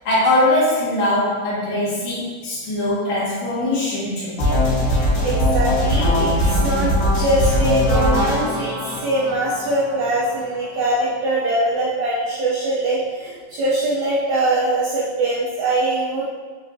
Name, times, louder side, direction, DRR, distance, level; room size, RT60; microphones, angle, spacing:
voice 1, 0.0-4.4, left 1 dB, 60° left, -9 dB, 1.4 m, -21 dB
sound 1, 4.4-10.4, left 1 dB, 80° left, 3.0 m, -20 dB
voice 2, 5.2-16.2, right 1 dB, 75° right, -8 dB, 1.8 m, -22 dB
6.2 x 2.5 x 2.7 m, 1.4 s
omnidirectional pair, 4.2 m